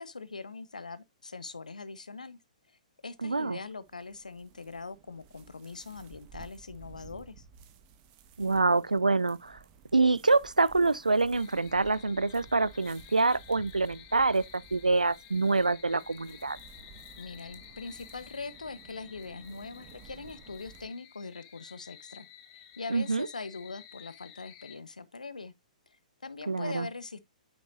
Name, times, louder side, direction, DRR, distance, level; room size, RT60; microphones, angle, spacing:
voice 1, 0.0-2.4 2.7-7.4 17.2-25.5 25.9-27.2, left 4 dB, 75° left, 1.0 m, -42 dB
sound 1, 3.1-20.9, right 6 dB, 30° right, 1.2 m, -55 dB
voice 2, 3.2-3.6 8.4-9.6 9.9-16.6 22.9-23.3 26.5-26.9, right 3 dB, 80° right, 0.4 m, -26 dB
sound 2, 11.3-24.8, left 11 dB, 30° left, 1.2 m, -53 dB
9.2 x 6.3 x 2.5 m
figure-of-eight pair, 115°, 4 cm